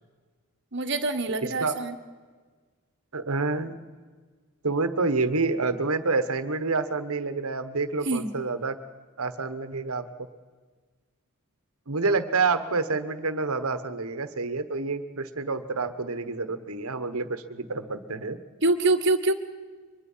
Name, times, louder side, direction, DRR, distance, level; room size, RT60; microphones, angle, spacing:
voice 1, 0.7-1.9 8.0-8.3 18.6-19.3, right 2 dB, 55° right, 6 dB, 1.5 m, -25 dB
voice 2, 3.1-3.8 4.6-8.8 9.2-10.0 11.9-18.4, right 3 dB, 80° right, 11 dB, 1.3 m, -28 dB
23.5 x 21.0 x 5.7 m, 1.5 s
head